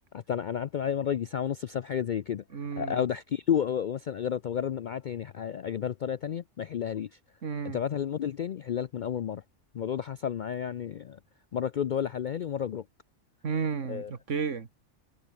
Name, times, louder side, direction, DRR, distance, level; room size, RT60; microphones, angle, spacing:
voice 1, 0.1-2.4 2.8-7.2 7.6-9.4 9.7-11.2 11.5-12.8 13.9-14.1, left 8 dB, 60° left, 0.5 m, -31 dB
voice 2, 2.5-3.0 7.4-7.8 13.4-14.7, right 5 dB, 75° right, 2.0 m, -32 dB
omnidirectional pair, 1.3 m